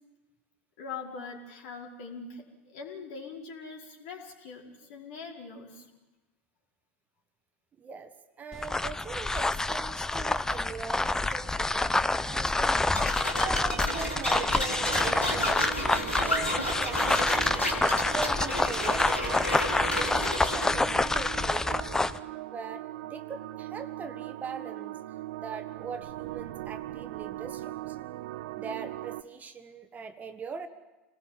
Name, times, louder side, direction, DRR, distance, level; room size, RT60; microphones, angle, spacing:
voice 1, 0.8-5.9, left 4 dB, 55° left, 0 dB, 4.8 m, -42 dB
voice 2, 7.8-12.8 13.3-17.6 18.0-19.6 19.9-22.1 22.5-25.0 25.4-28.0 28.5-30.7, right 5 dB, 25° right, 8 dB, 1.6 m, -41 dB
sound 1, 8.5-22.2, left 2 dB, 10° left, 0.8 m, -27 dB
sound 2, 12.9-20.7, left 2 dB, 85° left, 2.7 m, -32 dB
sound 3, 13.7-29.2, right 16 dB, 60° right, 0.8 m, -40 dB
28.0 x 19.0 x 7.4 m, 1.1 s
figure-of-eight pair, 80°, 6 cm